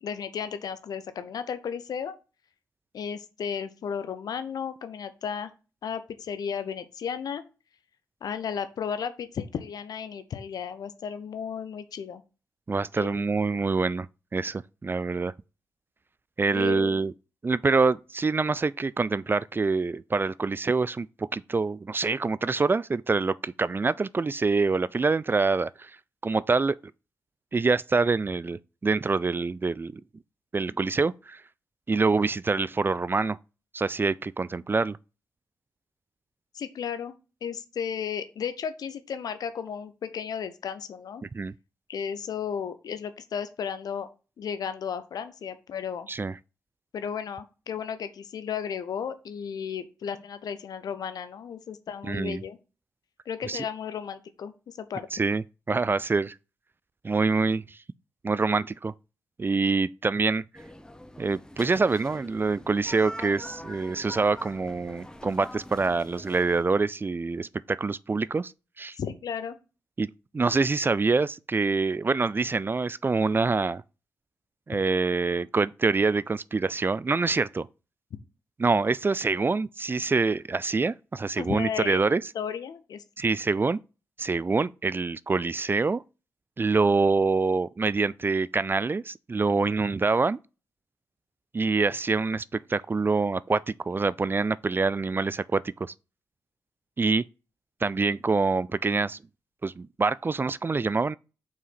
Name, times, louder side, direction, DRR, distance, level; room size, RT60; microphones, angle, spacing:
voice 1, 0.0-2.1 2.9-5.5 5.8-7.4 8.2-12.2 13.0-13.2 16.5-17.1 36.5-37.2 37.4-41.2 41.9-44.1 44.4-46.1 46.9-52.6 53.3-55.2 69.0-69.6 81.4-82.0 82.3-83.0, left 7 dB, 70° left, 0.8 m, -34 dB
voice 2, 12.7-14.1 14.3-15.3 16.4-17.1 17.4-25.9 26.2-26.8 27.5-30.0 30.5-31.4 31.9-33.4 33.7-35.0 41.3-41.5 46.1-46.3 52.0-52.4 53.4-53.6 55.1-56.4 57.0-57.8 58.2-58.9 59.4-60.4 61.2-68.5 68.8-69.0 70.0-73.8 74.7-77.7 78.6-82.2 83.2-83.8 84.2-86.0 86.6-90.4 91.5-95.9 97.0-97.2 97.8-99.2 99.6-101.2, right 4 dB, 30° right, 0.4 m, -25 dB
sound 1, 60.5-66.6, left 1 dB, 10° left, 0.9 m, -44 dB
5.7 x 4.6 x 4.1 m
supercardioid pair, 40°, 7 cm